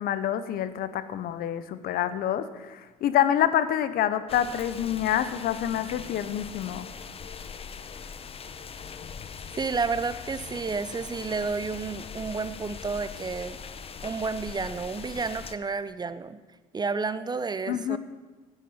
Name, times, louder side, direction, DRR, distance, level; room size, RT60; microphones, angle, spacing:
voice 1, 0.0-6.9 17.7-18.0, left 10 dB, 65° left, 13 dB, 0.8 m, -27 dB
sound 1, 4.3-15.6, left 6 dB, 35° left, 0.7 m, -41 dB
voice 2, 9.6-13.6 14.0-16.4 16.7-18.0, right 4 dB, 25° right, 13 dB, 0.6 m, -31 dB
10.5 x 9.4 x 5.6 m, 1.2 s
supercardioid pair, 70°, 17 cm